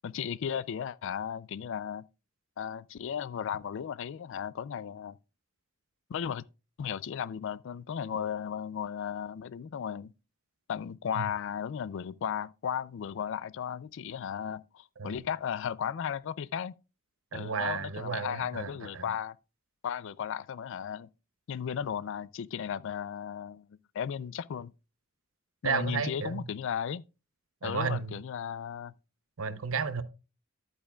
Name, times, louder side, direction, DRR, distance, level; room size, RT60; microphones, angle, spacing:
voice 1, 0.0-2.1 2.6-5.2 6.1-6.5 6.8-10.1 10.7-16.7 17.3-19.4 19.8-21.1 21.5-23.7 23.9-24.7 25.6-27.0 27.6-28.9, left 8 dB, 65° left, 0.3 m, -35 dB
voice 2, 17.3-19.0 25.6-26.4 27.6-28.2 29.4-30.0, right 5 dB, 70° right, 0.8 m, -33 dB
11.0 x 8.6 x 2.3 m
head